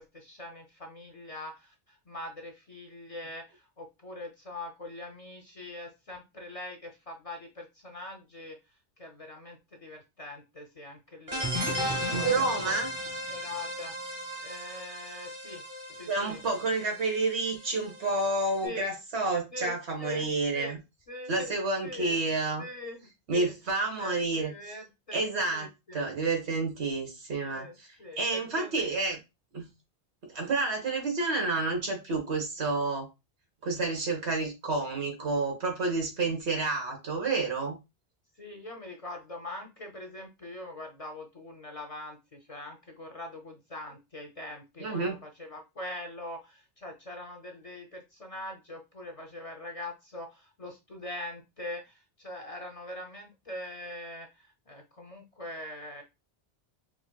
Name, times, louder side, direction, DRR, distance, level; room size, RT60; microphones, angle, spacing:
voice 1, 0.0-8.6 9.0-12.8 13.3-14.0 14.4-15.6 16.0-16.4 18.6-18.9 19.5-20.8 21.1-22.2 22.6-23.5 24.0-26.0 27.5-28.9 38.4-56.0, left 1 dB, 40° left, 0.6 m, -43 dB
sound 1, 11.3-18.6, equal, 35° right, 1.1 m, -36 dB
voice 2, 12.1-12.9 16.1-20.8 21.3-22.6 23.3-24.5 25.1-25.7 25.9-27.9 28.2-29.2 29.5-29.7 30.3-33.1 33.6-37.8 44.8-45.2, right 3 dB, 85° right, 1.5 m, -29 dB
4.8 x 2.8 x 2.2 m
omnidirectional pair, 1.1 m